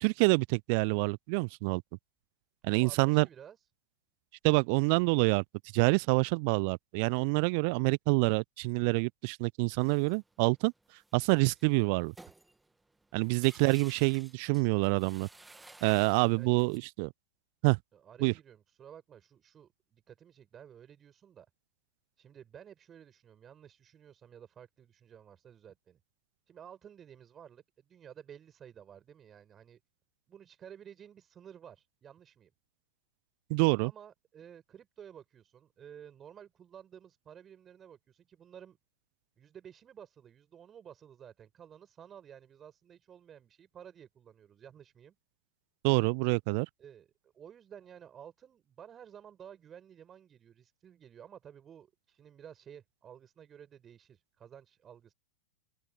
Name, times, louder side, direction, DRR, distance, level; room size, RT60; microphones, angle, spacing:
voice 1, 0.0-1.8 2.6-3.3 4.4-5.4 5.7-10.7 11.1-12.1 13.1-15.3 15.8-17.1 17.6-17.8 18.2-18.3 33.5-33.9 45.8-46.7, right 34 dB, 45° right, 0.5 m, -27 dB
voice 2, 2.7-3.7 16.4-16.6 17.9-21.5 22.2-26.0 26.5-29.8 30.3-32.5 33.8-38.8 39.4-45.1 46.8-55.1, right 9 dB, 25° right, 6.1 m, -53 dB
sound 1, 9.8-16.8, right 2 dB, 5° right, 1.8 m, -56 dB
figure-of-eight pair, 95°, 0 cm